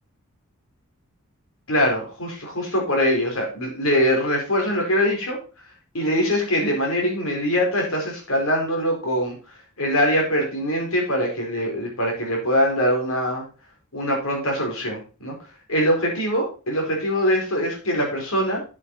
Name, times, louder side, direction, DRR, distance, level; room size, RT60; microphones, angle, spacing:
voice 1, 1.7-5.4 5.9-9.4 9.8-13.4 13.9-15.3 15.7-18.7, equal, 80° left, 0 dB, 4.4 m, -23 dB
8.4 x 8.1 x 4.2 m, 0.33 s
head